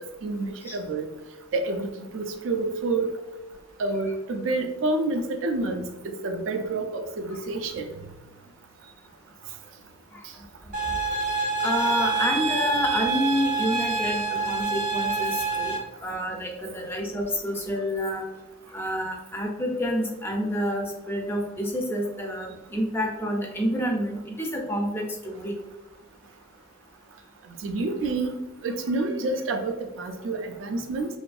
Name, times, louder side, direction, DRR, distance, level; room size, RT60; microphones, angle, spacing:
voice 1, 0.2-1.1 1.5-3.2 3.8-7.9 27.6-28.4 28.6-31.1, right 2 dB, 90° right, 5 dB, 0.4 m, -28 dB
sound 1, 10.7-15.8, right 4 dB, 45° right, 0.6 m, -27 dB
voice 2, 11.6-15.7 16.0-18.3 18.7-25.5, equal, 10° left, 1 dB, 0.4 m, -28 dB
2.6 x 2.4 x 2.2 m, 1.0 s
head